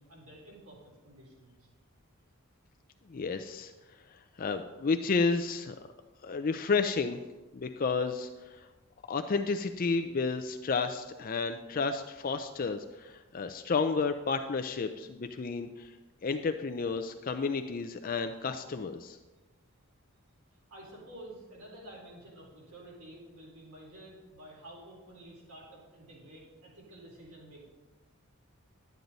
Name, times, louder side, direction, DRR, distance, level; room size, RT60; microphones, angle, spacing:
voice 1, 0.0-1.6 20.7-27.7, right 1 dB, 90° right, -4 dB, 4.3 m, -50 dB
voice 2, 3.1-3.7 4.4-5.8 6.2-7.2 7.5-8.7 9.1-15.9 16.2-19.2, left 4 dB, 40° left, 8 dB, 0.4 m, -31 dB
11.5 x 9.3 x 4.0 m, 1.2 s
head